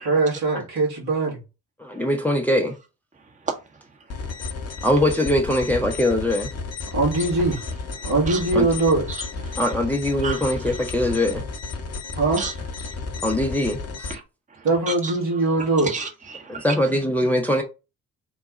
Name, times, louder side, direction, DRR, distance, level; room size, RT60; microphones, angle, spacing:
voice 1, 0.0-1.4 6.9-7.6 8.0-9.1 12.2-12.4 14.6-15.9, right 2 dB, 65° right, 1.9 m, -21 dB
voice 2, 1.8-2.7 4.8-6.5 8.5-8.6 9.6-11.4 13.2-14.1 16.6-17.6, left 1 dB, 5° left, 0.7 m, -22 dB
sound 1, 4.1-14.1, left 4 dB, 35° left, 1.0 m, -32 dB
voice 3, 8.0-8.4 9.1-9.6 10.2-10.8 12.2-12.5 14.1-14.2 14.5-15.2 15.6-16.7, right 4 dB, 15° right, 1.0 m, -33 dB
3.9 x 2.2 x 4.2 m
figure-of-eight pair, 40°, 43 cm